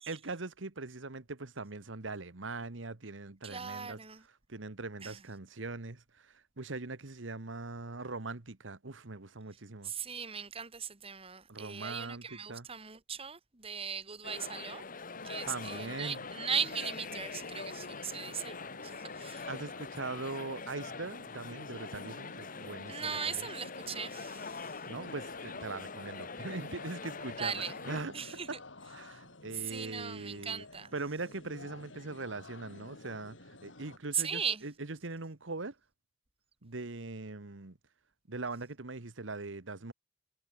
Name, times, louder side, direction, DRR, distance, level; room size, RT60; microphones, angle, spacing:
voice 1, 0.1-4.0 4.5-9.9 11.5-12.7 15.5-16.2 19.5-23.4 24.9-28.1 28.5-28.6 28.9-30.6 30.9-35.8 36.6-37.8 38.3-39.9, right 3 dB, 85° right, 1.5 m, -41 dB
voice 2, 3.4-4.2 5.0-5.2 9.8-14.8 15.2-18.6 18.8-19.5 22.9-24.7 27.4-27.8 28.1-28.6 29.5-30.9 34.1-34.7, right 7 dB, 30° right, 2.1 m, -38 dB
sound 1, 14.2-28.0, left 4 dB, 45° left, 1.7 m, -44 dB
sound 2, 15.1-34.0, left 2 dB, 75° left, 4.4 m, -52 dB
head